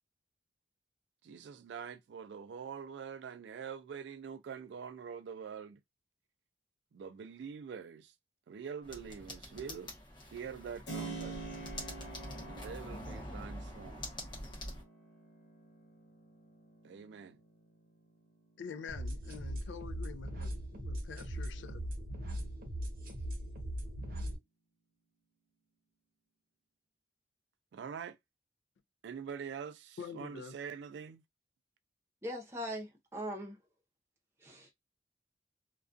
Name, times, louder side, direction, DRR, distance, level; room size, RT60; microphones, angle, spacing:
voice 1, 1.2-5.8 6.9-8.1 8.5-9.9 10.3-11.4 12.4-14.1 16.8-17.4 27.7-28.2 29.0-31.2, right 6 dB, 75° right, 0.3 m, -45 dB
sound 1, 8.8-14.8, left 1 dB, 25° left, 0.8 m, -45 dB
Keyboard (musical), 10.9-19.4, right 3 dB, 60° left, 0.8 m, -48 dB
voice 2, 18.6-21.8 30.0-30.5, left 6 dB, 80° left, 0.3 m, -46 dB
sound 2, 18.9-24.4, equal, 50° right, 0.7 m, -39 dB
voice 3, 32.2-33.6 34.4-34.7, equal, 15° right, 0.6 m, -40 dB
2.3 x 2.3 x 2.5 m
head